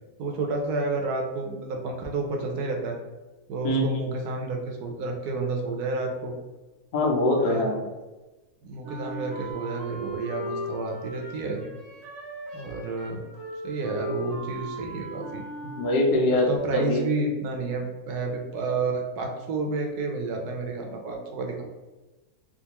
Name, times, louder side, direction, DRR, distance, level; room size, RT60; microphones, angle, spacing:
voice 1, 0.2-3.0 3.5-6.3 7.4-7.7 8.6-11.6 12.5-13.2 13.6-15.4 16.5-21.6, right 3 dB, 75° right, 2 dB, 1.2 m, -30 dB
voice 2, 6.9-7.8 15.8-17.0, left 1 dB, 80° left, 0 dB, 1.3 m, -23 dB
Wind instrument woodwind instrument, 8.8-16.4, right 1 dB, 60° right, 1.0 m, -37 dB
3.6 x 2.5 x 2.9 m, 1.1 s
omnidirectional pair, 1.7 m